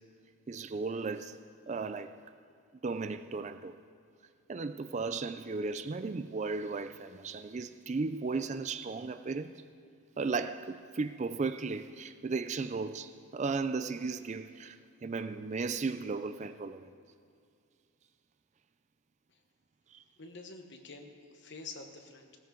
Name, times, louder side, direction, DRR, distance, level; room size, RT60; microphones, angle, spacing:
voice 1, 0.5-1.4 1.7-2.1 2.8-3.8 4.5-9.6 10.2-16.9 19.9-20.0, right 4 dB, 30° right, 0.3 m, -35 dB
voice 2, 20.2-22.4, left 3 dB, 50° left, 1.1 m, -48 dB
16.5 x 13.5 x 3.8 m
head